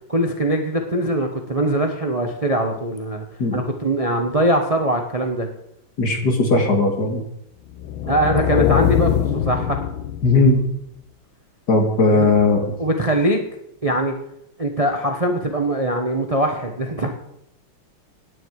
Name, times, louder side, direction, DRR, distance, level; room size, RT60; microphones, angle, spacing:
voice 1, 0.1-3.2 3.5-5.5 8.0-9.8 12.1-12.3 12.8-13.4 13.8-14.1 14.6-17.2, right 1 dB, 25° right, 4 dB, 0.9 m, -22 dB
voice 2, 6.0-7.2 10.2-10.6 11.7-12.7, left 3 dB, 55° left, 4 dB, 2.6 m, -17 dB
sound 1, 7.7-10.7, left 10 dB, 85° left, 1.7 m, -22 dB
17.0 x 10.0 x 4.8 m, 0.79 s
omnidirectional pair, 2.2 m